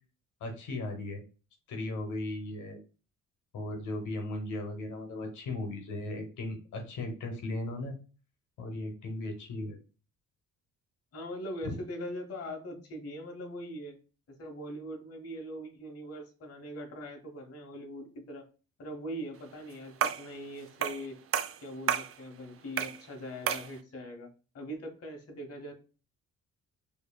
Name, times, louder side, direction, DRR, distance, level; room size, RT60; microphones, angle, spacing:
voice 1, 0.4-1.2 1.7-2.8 3.5-7.9 8.6-9.8 11.6-11.7, left 2 dB, 80° left, 4 dB, 1.0 m, -37 dB
voice 2, 11.1-14.0 14.3-18.4 18.8-21.2 21.6-24.3 24.5-25.7, equal, 50° left, 2 dB, 1.1 m, -41 dB
sound 1, 20.0-20.3 20.8-21.1 21.3-22.1 22.8-23.0 23.5-23.7, right 9 dB, 50° right, 0.5 m, -30 dB
4.7 x 2.8 x 2.2 m, 0.35 s
cardioid pair, 90°, 30 cm